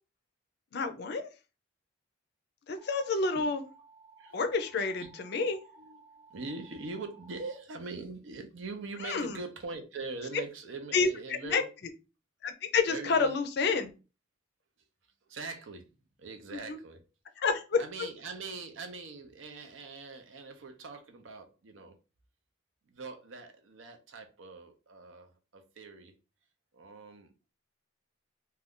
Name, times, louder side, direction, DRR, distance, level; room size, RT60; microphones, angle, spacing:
voice 1, 0.7-1.3 2.7-3.6 4.3-5.6 9.0-9.4 10.9-11.6 12.4-13.9 16.5-16.8 17.4-18.1, left 4 dB, 55° left, 0.4 m, -29 dB
sound 1, 2.8-7.6, right 4 dB, 25° right, 0.7 m, -57 dB
voice 2, 4.2-5.1 5.8-11.6 12.9-13.4 15.3-17.0 17.8-22.0 22.9-26.1 26.7-27.3, right 3 dB, 75° right, 0.6 m, -43 dB
2.5 x 2.2 x 3.5 m
head